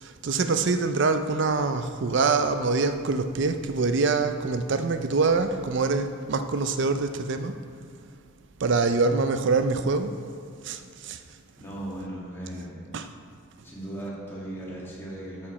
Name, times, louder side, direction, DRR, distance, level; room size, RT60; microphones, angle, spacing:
voice 1, 0.0-7.5 8.6-10.1 10.6-11.2 12.9-13.0, right 4 dB, 55° right, 9 dB, 0.4 m, -25 dB
voice 2, 11.6-12.9 13.6-15.5, right 1 dB, 10° left, -6 dB, 1.7 m, -37 dB
12.5 x 4.9 x 4.2 m, 2.3 s
head